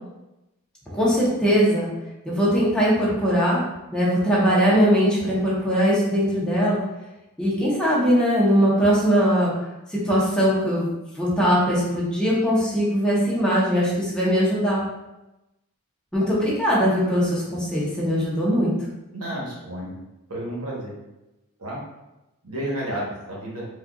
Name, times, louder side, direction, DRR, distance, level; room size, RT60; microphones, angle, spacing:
voice 1, 0.9-1.9 2.2-3.6 3.9-6.8 7.4-9.5 9.9-10.9 11.2-14.8 16.1-18.7, equal, 5° left, -7 dB, 0.9 m, -20 dB
voice 2, 19.1-19.9 20.3-20.9 21.6-21.8 22.4-23.7, right 1 dB, 70° right, -4 dB, 1.1 m, -31 dB
4.3 x 2.5 x 2.3 m, 0.97 s
head